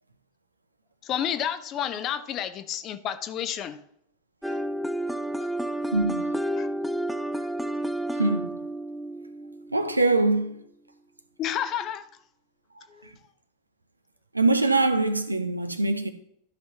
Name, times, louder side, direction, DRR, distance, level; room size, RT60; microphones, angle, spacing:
voice 1, 1.0-3.8 5.4-5.5 6.6-6.7 11.4-12.0 12.9-13.0, left 9 dB, 35° left, 0.7 m, -30 dB
sound 1, 4.4-10.3, right 1 dB, ahead, 0.4 m, -31 dB
voice 2, 5.9-6.3 8.2-8.6 9.7-10.6 14.3-16.1, right 2 dB, 85° right, 0.8 m, -23 dB
13.0 x 5.7 x 2.9 m
figure-of-eight pair, 90°, 0 cm